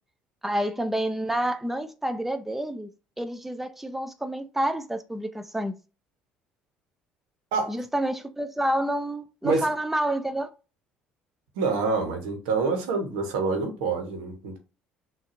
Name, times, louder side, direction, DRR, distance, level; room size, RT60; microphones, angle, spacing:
voice 1, 0.4-2.9 3.2-5.8 7.7-10.5, right 1 dB, 5° right, 0.6 m, -28 dB
voice 2, 11.5-14.6, right 4 dB, 80° right, 1.1 m, -26 dB
6.3 x 2.6 x 2.6 m
hypercardioid pair, 65°, 4 cm